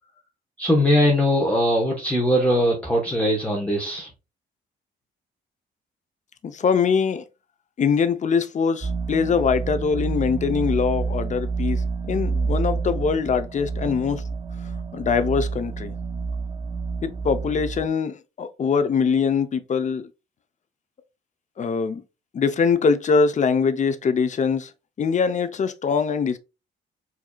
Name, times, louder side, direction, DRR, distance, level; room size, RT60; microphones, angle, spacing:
voice 1, 0.6-4.1, equal, 5° left, 1.0 m, -20 dB
voice 2, 6.4-7.2 7.8-14.2 14.9-16.0 17.0-20.1 21.6-22.0 22.3-24.7 25.0-26.4, left 5 dB, 40° left, 0.6 m, -23 dB
sound 1, 8.8-17.9, right 4 dB, 25° right, 0.4 m, -28 dB
4.9 x 2.7 x 2.2 m
cardioid pair, 90°, 20 cm